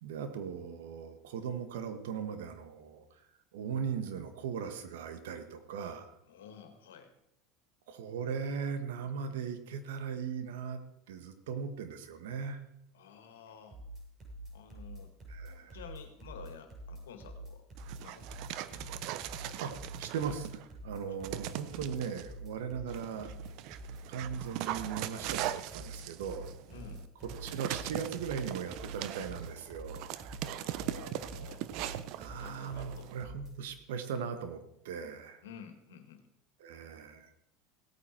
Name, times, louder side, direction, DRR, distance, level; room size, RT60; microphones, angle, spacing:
voice 1, 0.0-3.0 3.5-6.2 7.9-10.8 11.1-12.6 15.3-15.8 19.6-19.7 20.0-23.3 24.1-26.5 27.4-30.2 32.2-35.4 36.6-37.3, right 7 dB, 80° right, 9 dB, 1.4 m, -38 dB
voice 2, 6.3-7.1 12.9-13.8 14.5-15.1 15.7-17.6 18.0-18.9 19.3-19.6 21.1-21.2 21.7-21.9 26.7-27.0 30.4-31.7 32.4-33.1 35.4-36.3, left 7 dB, 85° left, 7 dB, 1.9 m, -51 dB
sound 1, 13.7-33.5, right 1 dB, 40° right, 6.6 m, -46 dB
Dog, 17.8-20.7 21.2-22.3 22.9-33.2, right 13 dB, 65° right, 0.7 m, -40 dB
17.0 x 8.9 x 4.5 m, 0.80 s
hypercardioid pair, 90°, 0 cm